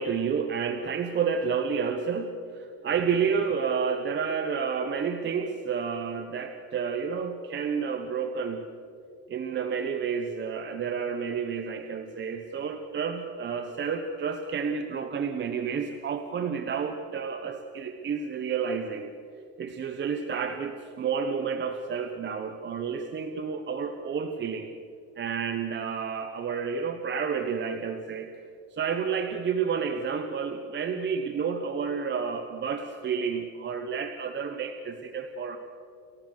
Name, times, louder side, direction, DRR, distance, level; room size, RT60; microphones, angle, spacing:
voice 1, 0.0-8.7 9.3-19.1 19.6-24.7 25.2-28.3 28.7-35.6, right 6 dB, 30° right, 7 dB, 1.0 m, -30 dB
29.5 x 14.5 x 6.6 m, 2.4 s
cardioid pair, 155°, 40 cm